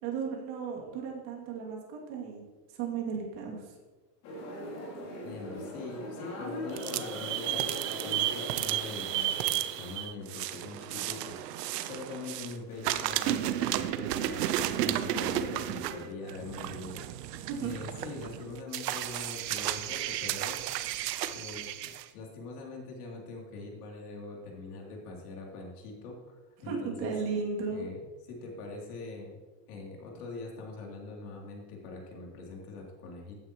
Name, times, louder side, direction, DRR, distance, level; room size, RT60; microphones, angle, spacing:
voice 1, 0.0-3.7 17.4-17.8 26.6-27.9, right 5 dB, 45° right, -2 dB, 2.6 m, -35 dB
sound 1, 4.2-9.7, left 1 dB, 45° left, 3.2 m, -41 dB
voice 2, 5.2-11.4 11.9-17.0 17.6-20.6 21.3-26.2 26.6-27.1 27.7-28.0 28.3-29.4 29.7-33.4, left 3 dB, 65° left, -1 dB, 3.2 m, -43 dB
sound 2, 6.7-12.5 12.8-22.0, right 12 dB, 75° right, 0.9 m, -33 dB
15.0 x 9.4 x 3.1 m, 1.3 s
supercardioid pair, 175°, 49 cm